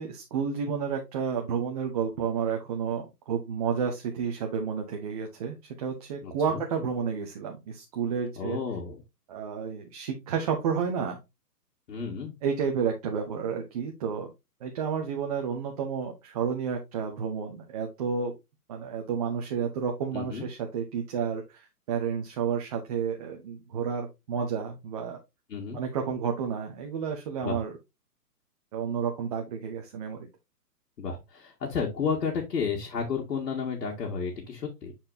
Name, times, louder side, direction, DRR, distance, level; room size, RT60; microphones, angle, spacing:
voice 1, 0.0-8.6 9.3-11.2 12.4-14.3 14.6-18.3 18.7-25.2 25.7-27.7 28.7-30.3, right 6 dB, 25° right, 2 dB, 0.7 m, -31 dB
voice 2, 6.2-6.6 8.4-9.0 11.9-12.3 20.1-20.4 25.5-25.8 27.4-27.6 31.0-34.9, left 5 dB, 70° left, 0 dB, 2.0 m, -32 dB
8.5 x 4.4 x 2.7 m, 0.23 s
hypercardioid pair, 150°, 48 cm